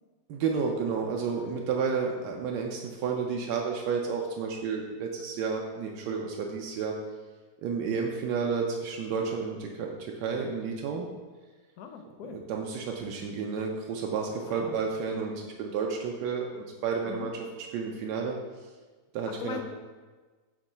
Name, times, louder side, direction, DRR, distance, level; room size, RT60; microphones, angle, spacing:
voice 1, 0.3-6.9 7.6-11.1 12.2-17.3 17.7-18.4 19.1-19.6, right 5 dB, 90° right, 0 dB, 1.2 m, -31 dB
voice 2, 11.8-12.4 14.4-14.7 17.1-17.3 19.3-19.6, left 8 dB, 70° left, 6 dB, 0.9 m, -40 dB
5.1 x 3.8 x 5.4 m, 1.3 s
omnidirectional pair, 1.8 m